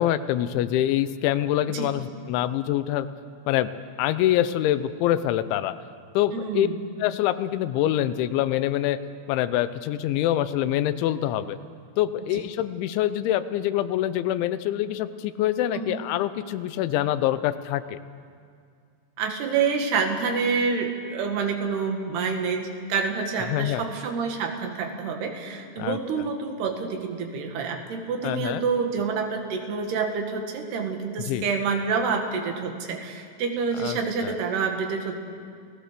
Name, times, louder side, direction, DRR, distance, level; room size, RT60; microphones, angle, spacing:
voice 1, 0.0-3.1 3.5-3.7 4.0-5.7 6.1-6.7 7.0-9.0 9.3-11.6 12.0-18.0 23.5-23.8 25.8-26.0 28.2-28.7 31.2-31.4 33.8-34.4, left 12 dB, 85° left, 13 dB, 3.2 m, -25 dB
voice 2, 6.3-6.8 12.3-12.4 15.7-16.0 19.2-35.2, right 5 dB, 65° right, 4 dB, 3.8 m, -27 dB
29.5 x 19.0 x 6.8 m, 2.2 s
omnidirectional pair, 5.3 m